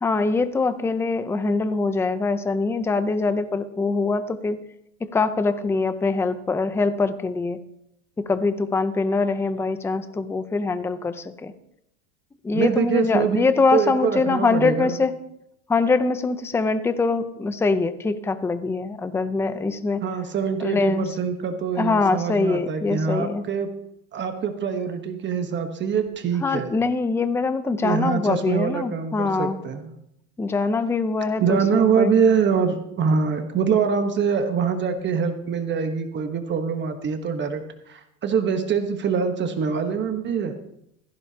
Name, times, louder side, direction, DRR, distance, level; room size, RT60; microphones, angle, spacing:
voice 1, 0.0-4.6 5.1-7.6 8.2-11.5 12.4-15.1 15.7-20.0 20.6-21.1 21.8-23.4 26.4-29.6 30.4-32.1, left 3 dB, 5° left, 11 dB, 0.5 m, -23 dB
voice 2, 12.5-13.4 13.7-15.0 20.0-23.7 24.1-26.7 27.8-29.9 31.4-40.6, right 6 dB, 30° right, 6 dB, 1.2 m, -24 dB
16.0 x 14.5 x 2.9 m, 0.77 s
supercardioid pair, 135°, 36 cm